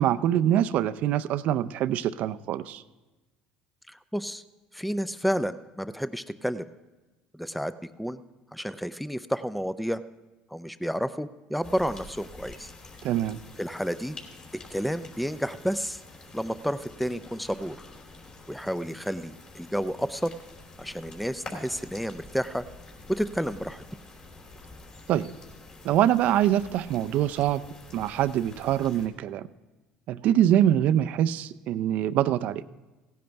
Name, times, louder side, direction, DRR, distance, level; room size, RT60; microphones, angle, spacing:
voice 1, 0.0-2.8 13.0-13.4 25.1-25.3 25.8-27.6 27.9-29.5 30.1-32.6, right 11 dB, 65° right, 14 dB, 0.4 m, -24 dB
voice 2, 3.9-4.4 4.7-6.7 7.3-8.2 8.5-10.0 10.5-12.7 13.6-14.2 14.7-16.0 16.3-17.8 18.5-20.3 20.8-22.6 23.1-23.8, equal, ahead, 14 dB, 0.4 m, -30 dB
sound 1, 11.6-29.1, left 2 dB, 35° left, 3.1 m, -47 dB
16.5 x 10.5 x 3.4 m, 1.2 s
supercardioid pair, 90°, 3 cm